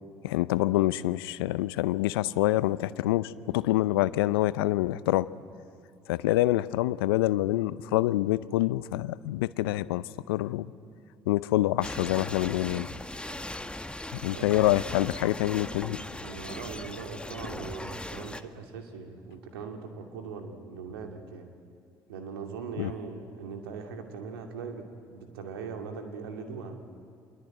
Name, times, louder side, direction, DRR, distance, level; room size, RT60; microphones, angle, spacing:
voice 1, 0.2-5.3 6.1-10.7 11.3-12.9 14.1-16.0 22.8-22.9, left 16 dB, 80° left, 18 dB, 0.6 m, -26 dB
sound 1, 11.8-18.4, left 1 dB, 10° left, 1.4 m, -39 dB
voice 2, 16.2-21.5 22.1-24.9 25.1-26.8, right 5 dB, 80° right, 4 dB, 2.6 m, -40 dB
26.5 x 22.0 x 9.1 m, 2.3 s
hypercardioid pair, 50°, 12 cm